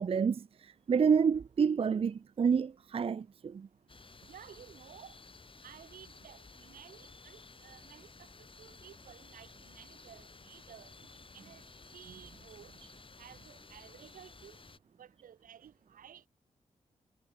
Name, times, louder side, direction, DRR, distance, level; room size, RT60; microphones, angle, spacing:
voice 1, 0.0-3.7, right 6 dB, 45° right, 0.5 m, -29 dB
sound 1, 3.9-14.8, left 4 dB, 40° left, 3.4 m, -55 dB
voice 2, 4.2-5.1 5.6-10.9 11.3-11.6 11.9-12.7 13.2-14.6 15.0-16.3, right 9 dB, 85° right, 7.3 m, -54 dB
cardioid pair, 55°, 14 cm